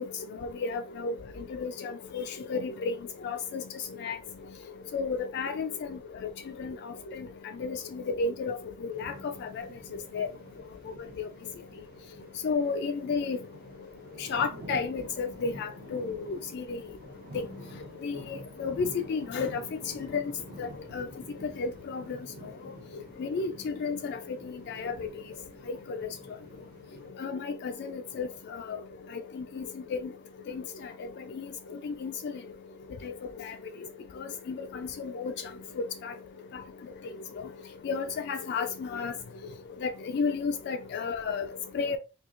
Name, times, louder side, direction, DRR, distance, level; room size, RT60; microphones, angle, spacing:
voice 1, 0.6-1.1 1.6-2.2 2.5-2.9 3.2-3.6 4.0-4.2 4.9-5.7 6.6-6.7 7.6-7.8 8.2-8.6 8.8-9.1 10.1-10.3 12.4-13.4 14.2-16.8 17.3-17.4 18.0-19.6 20.0-20.2 20.6-20.7 20.9-21.1 21.6-22.0 23.2-24.2 24.7-25.1 26.0-26.1 27.2-28.3 28.7-28.8 29.4-29.6 29.9-30.0 30.5-30.6 31.4-31.5 31.8-32.1 33.0-33.1 33.4-33.5 34.5-34.7 35.0-35.3 36.0-36.1 37.8-39.1 39.8-41.5 41.7-42.0, left 5 dB, 50° left, 0.3 m, -31 dB
sound 1, 8.9-27.1, right 1 dB, 45° right, 0.7 m, -49 dB
4.3 x 2.7 x 2.4 m
head